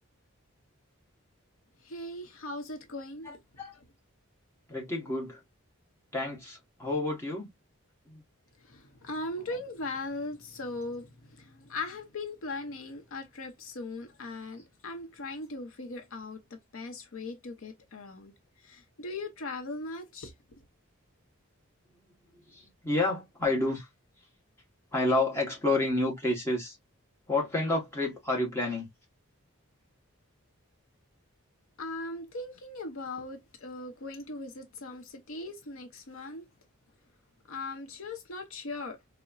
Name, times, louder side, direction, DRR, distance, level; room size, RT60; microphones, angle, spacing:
voice 1, 1.8-3.3 8.6-16.4 16.7-18.3 18.6-20.3 31.8-36.5 37.5-39.0, left 2 dB, 70° left, 0.7 m, -39 dB
voice 2, 3.2-3.8 4.7-5.4 6.1-7.5 8.1-8.2 22.5-23.9 24.9-26.8 27.3-28.9, left 2 dB, 10° left, 1.0 m, -29 dB
3.9 x 2.1 x 2.2 m
head